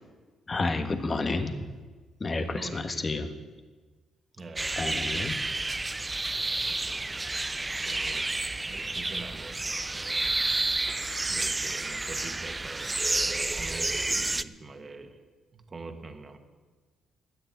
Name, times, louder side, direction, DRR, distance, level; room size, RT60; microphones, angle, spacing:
voice 1, 0.5-1.7 2.2-3.3 4.8-5.4, left 3 dB, 30° left, 7 dB, 1.4 m, -30 dB
voice 2, 2.5-3.0 4.3-5.6 6.5-7.1 7.7-10.3 11.3-15.2 15.5-16.4, right 3 dB, 35° right, 6 dB, 1.6 m, -45 dB
sound 1, 4.6-14.4, right 2 dB, 20° right, 0.5 m, -30 dB
13.0 x 9.8 x 8.5 m, 1.4 s
cardioid pair, 90°, 0 cm